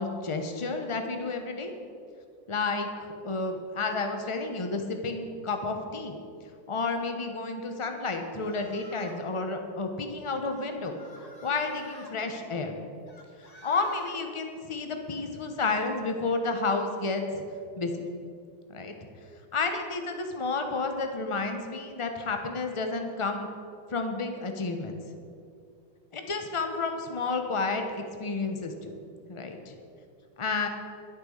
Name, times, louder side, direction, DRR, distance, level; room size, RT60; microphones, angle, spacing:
voice 1, 0.0-1.7 2.5-6.1 6.7-11.0 11.4-12.8 13.6-17.4 17.8-18.1 18.7-18.9 19.5-23.5 23.9-25.0 26.1-29.0 29.3-29.7 30.4-30.7, left 3 dB, 40° left, 5 dB, 0.4 m, -31 dB
sound 1, 8.0-9.3 10.5-12.1 13.1-14.2, equal, 20° left, 1.2 m, -50 dB
11.5 x 8.5 x 6.5 m, 2.4 s
omnidirectional pair, 2.2 m